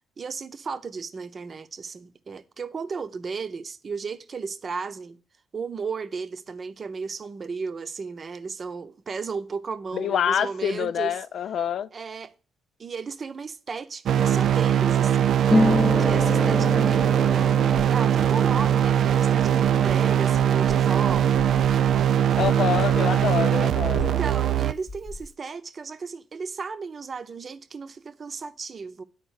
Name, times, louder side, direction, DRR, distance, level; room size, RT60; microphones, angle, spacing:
voice 1, 0.2-5.2 5.5-11.1 11.9-12.3 12.8-15.4 16.0-21.3 24.0-29.0, right 5 dB, 40° right, 0.7 m, -34 dB
voice 2, 9.9-11.9 22.4-24.2, left 9 dB, 65° left, 0.4 m, -26 dB
sound 1, 14.1-24.7, right 9 dB, 65° right, 0.4 m, -21 dB
Harp, 15.5-23.0 23.2-24.3 24.6-25.3, left 1 dB, 30° left, 0.9 m, -29 dB
10.0 x 4.3 x 6.4 m
cardioid pair, 90°, 0 cm